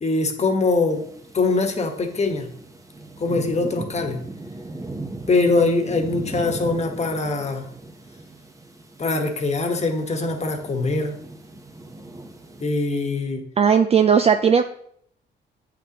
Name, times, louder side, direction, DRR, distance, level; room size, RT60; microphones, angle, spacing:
voice 1, 0.0-1.1 1.3-2.5 3.2-4.2 5.3-7.7 9.0-11.1 12.6-13.5, left 3 dB, 35° left, 4 dB, 1.3 m, -22 dB
sound 1, 0.9-12.6, right 2 dB, 15° right, 0.9 m, -38 dB
voice 2, 13.6-14.6, right 7 dB, 30° right, 8 dB, 0.4 m, -16 dB
8.5 x 5.9 x 2.9 m, 0.66 s
cardioid pair, 90°, 20 cm